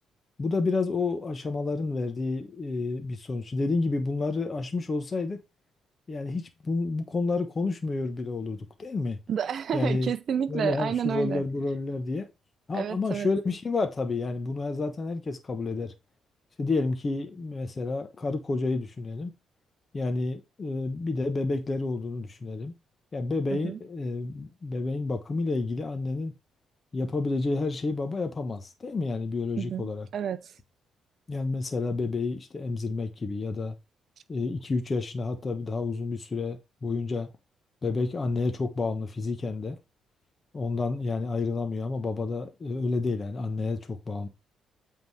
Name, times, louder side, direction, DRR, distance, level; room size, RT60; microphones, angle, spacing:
voice 1, 0.4-5.4 6.1-9.2 9.7-10.1 10.5-12.3 12.7-15.9 16.6-19.3 19.9-22.7 23.1-26.3 26.9-30.1 31.3-33.7 34.3-37.3 37.8-39.8 40.5-44.3, left 3 dB, 35° left, 1.1 m, -30 dB
voice 2, 9.3-11.4 12.7-13.3 23.5-23.8 29.6-30.5, right 8 dB, 60° right, 0.5 m, -30 dB
8.1 x 3.8 x 4.7 m
cardioid pair, 90°, 0 cm